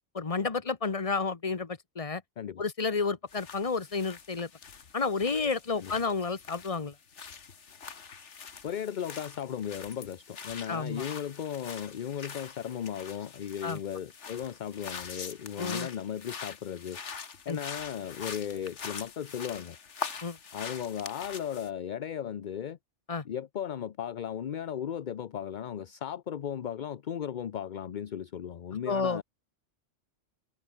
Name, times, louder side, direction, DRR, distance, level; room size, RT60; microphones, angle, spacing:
voice 1, 0.1-2.2 2.6-4.5 4.9-6.9 10.7-11.0 13.6-13.8 15.6-15.9 17.5-17.6 20.2-20.4 23.1-23.2 28.8-29.2, left 4 dB, 30° left, 1.2 m, -31 dB
sound 1, 3.3-21.7, left 6 dB, 75° left, 1.8 m, -44 dB
voice 2, 8.6-17.0 17.5-19.8 20.5-22.8 23.2-29.2, left 9 dB, 50° left, 0.7 m, -36 dB
omnidirectional pair, 1.2 m